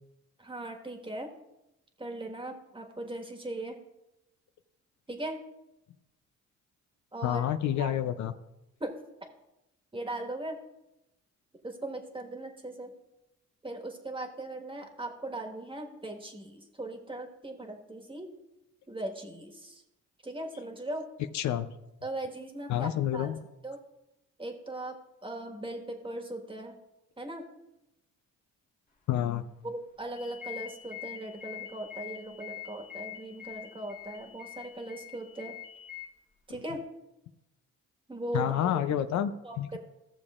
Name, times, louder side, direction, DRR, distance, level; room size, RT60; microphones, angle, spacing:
voice 1, 0.4-1.3 2.0-3.8 5.1-5.4 7.1-7.4 7.8-7.9 8.8-8.9 9.9-10.6 11.6-12.9 13.6-18.3 18.9-19.8 20.2-21.0 22.0-23.3 23.6-23.8 24.4-25.0 25.2-26.7 27.2-27.4 29.6-35.6 36.5-36.8 38.1-39.0 39.4-39.8, right 1 dB, 15° right, 3 dB, 1.5 m, -39 dB
voice 2, 7.2-8.3 21.3-21.7 22.7-23.4 29.1-29.4 38.3-39.3 39.6-39.8, left 11 dB, 70° left, 10 dB, 0.6 m, -28 dB
sound 1, 30.2-36.1, left 13 dB, 25° left, 1.5 m, -44 dB
15.0 x 7.0 x 2.4 m, 0.91 s
cardioid pair, 90°, 30 cm